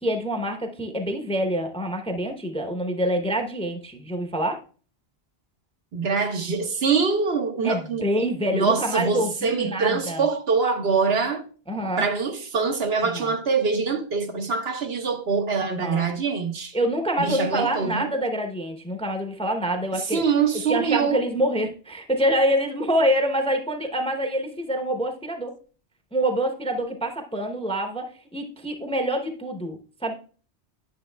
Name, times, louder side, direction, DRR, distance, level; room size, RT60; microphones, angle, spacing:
voice 1, 0.0-4.6 7.6-10.3 11.7-12.0 13.0-13.3 15.8-16.1 16.7-20.2 20.7-25.5 26.1-28.0 28.3-30.1, right 1 dB, 5° left, 0.6 m, -26 dB
voice 2, 5.9-8.0 8.5-11.4 12.0-16.7 17.2-18.1 19.9-21.2, right 5 dB, 70° right, 1.1 m, -24 dB
10.5 x 6.3 x 2.2 m
omnidirectional pair, 1.1 m